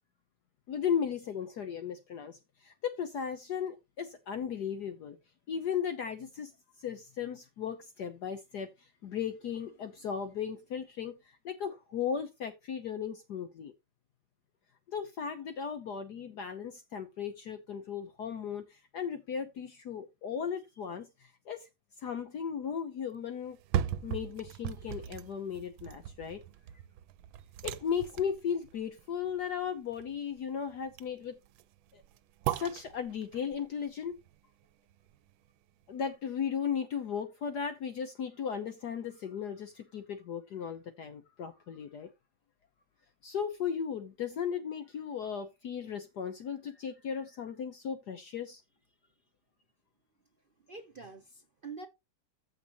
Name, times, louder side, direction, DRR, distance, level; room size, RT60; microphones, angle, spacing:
voice 1, 0.7-5.2 5.5-6.5 6.8-13.7 14.9-21.7 22.0-23.6 24.0-26.4 27.6-31.4 31.9-32.0 32.5-34.2 35.9-42.1 43.2-48.6, left 7 dB, 60° left, 1.3 m, -36 dB
sound 1, 23.4-35.5 35.9-36.0, right 11 dB, 80° right, 1.4 m, -39 dB
voice 2, 50.6-51.9, right 4 dB, 60° right, 0.5 m, -46 dB
14.5 x 5.4 x 2.9 m
omnidirectional pair, 2.2 m